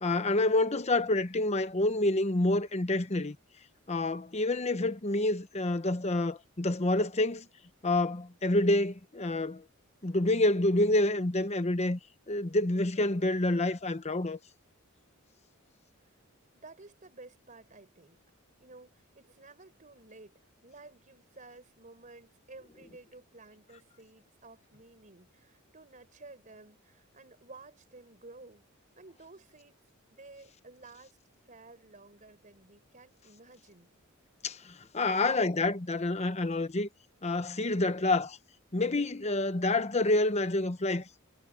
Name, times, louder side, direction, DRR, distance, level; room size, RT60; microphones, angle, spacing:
voice 1, 0.0-3.4 3.9-7.5 7.8-9.6 10.0-12.0 12.3-14.4 34.4-36.9 37.2-38.4 38.7-41.1, left 2 dB, 30° left, 0.9 m, -28 dB
voice 2, 16.5-18.2 18.6-28.6 29.0-29.8 30.1-31.2 31.5-33.9, right 3 dB, 35° right, 4.7 m, -53 dB
head